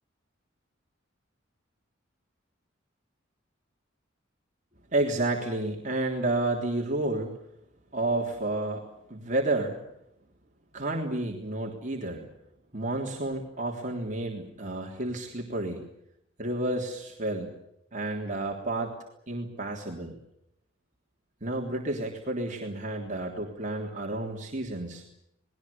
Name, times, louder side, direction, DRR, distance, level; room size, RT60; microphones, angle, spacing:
voice 1, 4.9-7.3 7.9-9.8 10.7-12.3 12.7-15.8 16.4-17.5 17.9-19.0 19.3-20.2 21.4-25.0, right 2 dB, 40° right, 0 dB, 3.4 m, -30 dB
29.5 x 20.5 x 7.1 m, 0.77 s
head